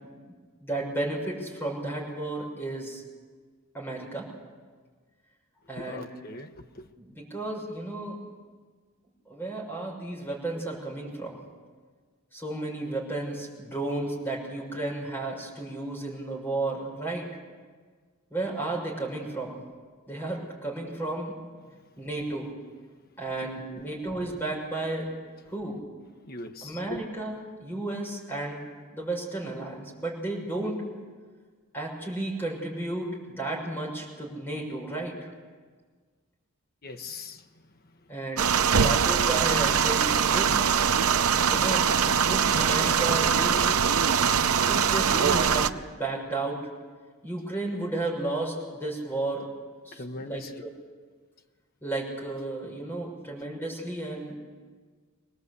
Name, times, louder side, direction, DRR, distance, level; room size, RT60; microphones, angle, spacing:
voice 1, 0.6-3.0 3.7-4.3 5.7-6.1 7.0-8.2 9.3-11.4 12.3-17.3 18.3-19.6 20.1-21.4 22.0-22.5 23.2-25.1 25.5-25.8 26.6-30.8 31.7-35.3 38.1-40.5 41.4-41.9 42.3-43.9 44.3-46.7 47.2-49.4 49.8-50.4 51.8-54.4, right 2 dB, 10° left, -2 dB, 6.3 m, -33 dB
voice 2, 5.7-6.9 23.4-23.8 26.3-27.0 36.8-37.4 40.9-41.5 49.9-50.6, left 2 dB, 45° left, 6 dB, 1.1 m, -41 dB
sound 1, 38.4-45.7, right 7 dB, 85° right, 0.7 m, -23 dB
23.5 x 19.0 x 8.3 m, 1.5 s
head